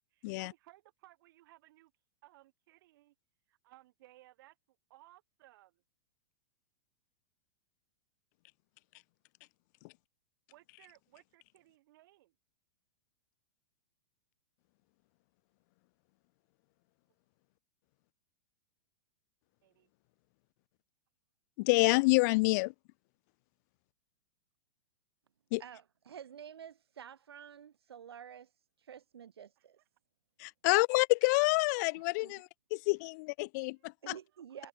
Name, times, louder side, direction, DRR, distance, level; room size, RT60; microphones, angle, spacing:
voice 1, 0.1-1.9 2.2-3.1 3.5-5.8 10.5-12.4 19.6-19.9 29.6-29.7 32.0-32.1 33.8-33.9 34.3-34.6, right 16 dB, 60° right, 6.1 m, -61 dB
voice 2, 21.6-22.7 25.5-25.6 30.4-34.1, left 26 dB, 45° left, 0.4 m, -28 dB
voice 3, 25.6-28.5 28.8-29.8 31.9-32.3 34.0-34.7, right 8 dB, 85° right, 1.4 m, -50 dB
hypercardioid pair, 115°, 13 cm